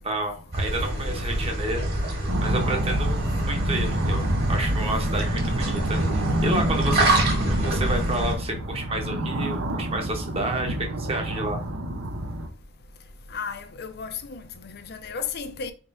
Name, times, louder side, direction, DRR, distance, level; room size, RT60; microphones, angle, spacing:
voice 1, 0.0-1.9 2.4-7.2 7.5-11.6, right 2 dB, 30° right, 0.9 m, -30 dB
sound 1, 0.5-8.3, right 1 dB, 50° right, 1.6 m, -26 dB
sound 2, 2.3-12.5, right 1 dB, 70° right, 0.7 m, -29 dB
voice 2, 13.3-15.7, left 6 dB, 50° left, 0.5 m, -34 dB
4.4 x 3.6 x 2.6 m
head